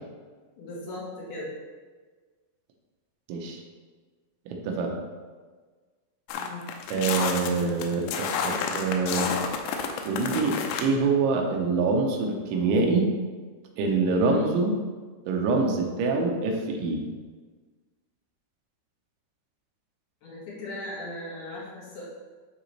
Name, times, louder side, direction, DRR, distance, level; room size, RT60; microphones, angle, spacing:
voice 1, 0.6-1.5 6.4-6.7 14.1-14.5 20.2-22.0, left 2 dB, 65° left, -7 dB, 3.5 m, -37 dB
voice 2, 4.5-5.0 6.9-9.3 10.0-13.1 13.8-14.7 15.3-17.0, right 4 dB, 85° right, 1 dB, 3.3 m, -25 dB
sound 1, 6.3-10.8, left 6 dB, 90° left, 3.0 m, -30 dB
11.5 x 4.0 x 3.3 m, 1.4 s
omnidirectional pair, 5.1 m